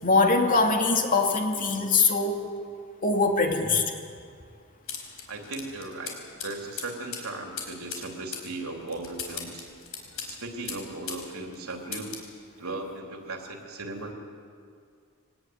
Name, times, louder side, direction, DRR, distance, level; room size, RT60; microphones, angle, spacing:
voice 1, 0.0-2.5 3.0-3.8, left 3 dB, 40° left, 2 dB, 2.7 m, -22 dB
sound 1, 4.9-11.3 11.5-12.3, left 7 dB, 75° left, 4.6 m, -39 dB
voice 2, 5.3-6.2 6.4-9.7 10.3-12.2 12.6-14.1, right 2 dB, 80° right, 2 dB, 3.5 m, -37 dB
22.5 x 19.0 x 9.5 m, 2.2 s
head